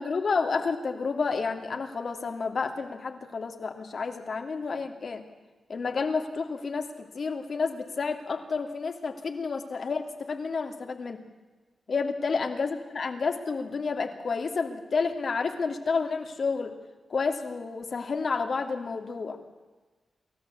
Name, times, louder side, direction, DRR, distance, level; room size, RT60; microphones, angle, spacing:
voice 1, 0.0-5.2 5.7-11.2 11.9-16.7 17.1-19.4, left 4 dB, 60° left, 6 dB, 2.7 m, -30 dB
29.0 x 13.5 x 8.5 m, 1.3 s
cardioid pair, 60°, 0 cm